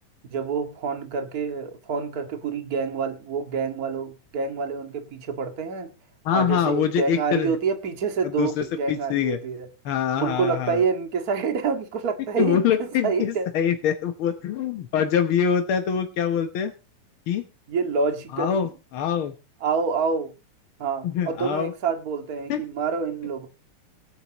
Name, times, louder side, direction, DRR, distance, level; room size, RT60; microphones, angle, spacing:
voice 1, 0.3-5.9 6.3-9.7 10.2-13.5 17.7-18.7 19.6-20.3 20.8-23.5, right 5 dB, 35° right, 2.0 m, -27 dB
voice 2, 6.2-7.6 8.4-9.4 9.8-10.8 12.4-16.7 17.3-17.4 18.3-19.3 21.0-21.7 22.5-22.6, left 8 dB, 65° left, 1.4 m, -24 dB
23.0 x 9.2 x 3.0 m
omnidirectional pair, 3.6 m